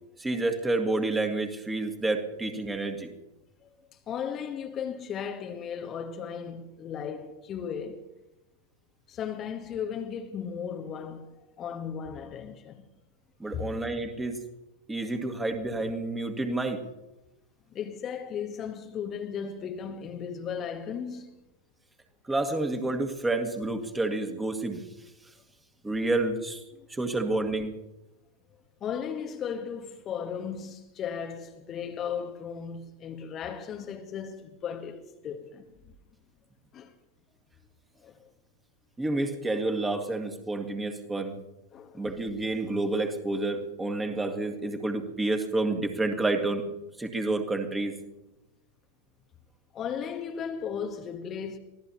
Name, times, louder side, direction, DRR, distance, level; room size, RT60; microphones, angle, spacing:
voice 1, 0.2-3.1 13.4-14.4 14.9-16.8 22.3-24.8 25.8-26.6 26.9-27.8 39.0-41.4 41.9-46.6 47.0-48.0, right 2 dB, 10° right, 2.0 m, -29 dB
voice 2, 3.6-8.1 9.1-12.9 13.5-13.8 17.7-21.3 26.8-26.9 28.8-35.9 36.7-36.9 38.0-38.3 41.7-42.1 49.7-51.6, left 7 dB, 30° left, 1.1 m, -36 dB
24.5 x 16.5 x 2.9 m
figure-of-eight pair, 90°, 0 cm